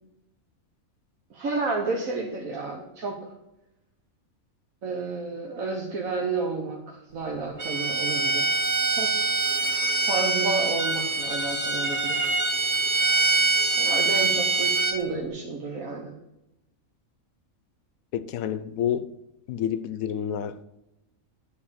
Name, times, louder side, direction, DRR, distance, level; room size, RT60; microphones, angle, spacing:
voice 1, 1.3-3.3 4.8-8.6 8.9-9.1 9.6-12.3 13.8-16.1, right 3 dB, 75° right, 1.5 m, -31 dB
Bowed string instrument, 7.6-15.0, right 3 dB, 40° right, 1.0 m, -24 dB
voice 2, 18.1-19.1 19.5-20.7, left 9 dB, 80° left, 1.0 m, -29 dB
10.5 x 4.4 x 7.2 m
omnidirectional pair, 1.5 m